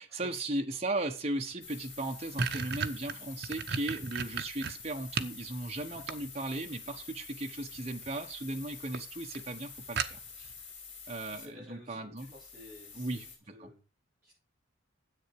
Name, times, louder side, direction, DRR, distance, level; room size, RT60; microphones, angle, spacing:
voice 1, 0.0-10.5 11.1-12.3 12.9-13.7, right 2 dB, 30° right, 3 dB, 1.2 m, -37 dB
sound 1, 1.5-1.6 1.9-5.4 5.8-6.7 7.8-8.2 8.5-8.6 8.9-9.0 9.3-9.4 10.0-10.5, right 5 dB, 55° right, 0.9 m, -35 dB
sound 2, 1.6-11.5 12.2-13.4, left 5 dB, 55° left, 4.2 m, -48 dB
voice 2, 11.3-13.8 14.2-14.3, left 2 dB, 10° right, -10 dB, 7.3 m, -53 dB
10.5 x 8.0 x 4.8 m, 0.33 s
head